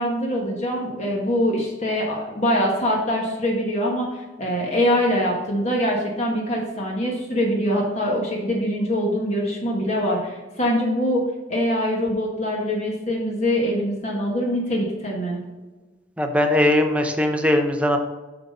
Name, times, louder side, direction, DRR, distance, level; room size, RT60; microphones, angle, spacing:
voice 1, 0.0-11.2 11.5-15.4, equal, 35° left, -1 dB, 1.3 m, -23 dB
voice 2, 16.2-18.0, left 1 dB, 5° right, 4 dB, 0.7 m, -20 dB
8.4 x 4.0 x 5.4 m, 1.2 s
head